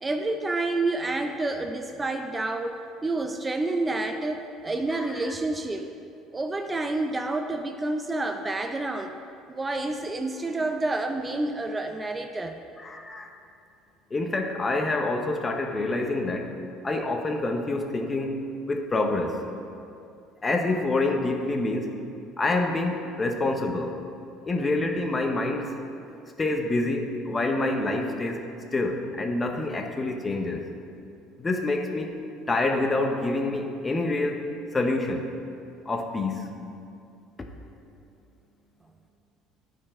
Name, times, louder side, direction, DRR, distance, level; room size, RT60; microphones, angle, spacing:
voice 1, 0.0-5.9 6.3-9.2 9.5-12.6, right 2 dB, 20° right, 5 dB, 0.5 m, -29 dB
voice 2, 4.9-5.3 12.8-13.3 14.1-16.5 16.8-19.4 20.4-22.0 22.4-24.0 24.5-25.7 26.4-28.5 28.7-30.7 31.4-32.1 32.5-34.4 34.7-35.3 35.9-36.5, left 2 dB, 25° left, 4 dB, 0.9 m, -27 dB
10.5 x 4.6 x 4.3 m, 2.5 s
hypercardioid pair, 75°, 0 cm